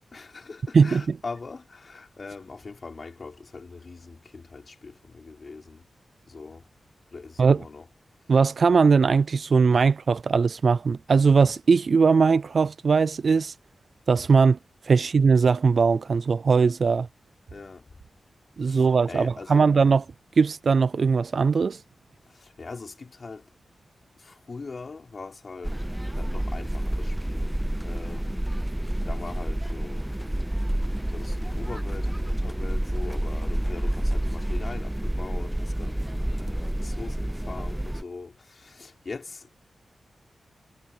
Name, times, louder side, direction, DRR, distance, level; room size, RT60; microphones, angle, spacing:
voice 1, 0.1-5.9 6.3-6.7 7.1-7.9 17.5-17.9 18.6-19.7 22.3-23.5 24.2-25.8 26.1-27.5 27.8-28.5 29.1-30.1 31.1-39.5, left 4 dB, 45° left, 5.2 m, -41 dB
voice 2, 0.7-1.2 7.4-7.6 8.3-13.5 14.1-14.6 14.8-17.1 18.6-20.0 20.4-21.8, right 5 dB, 55° right, 0.4 m, -20 dB
sound 1, 25.6-38.0, right 1 dB, 5° right, 0.8 m, -29 dB
wide cardioid pair, 120°, 0 cm